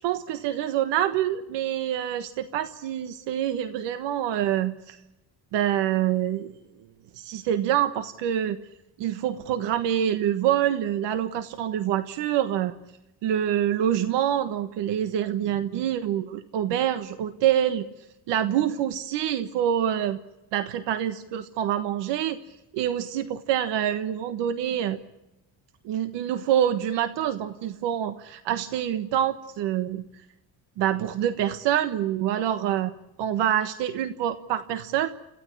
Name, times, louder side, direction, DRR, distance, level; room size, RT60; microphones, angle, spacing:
voice 1, 0.0-5.0 5.5-6.5 7.2-8.6 9.0-12.7 13.2-17.8 18.3-20.2 20.5-22.4 22.7-25.0 25.8-30.0 30.8-32.9 33.2-35.1, right 10 dB, 85° right, 10 dB, 1.4 m, -26 dB
27.5 x 15.5 x 10.0 m, 0.94 s
cardioid pair, 105°, 42 cm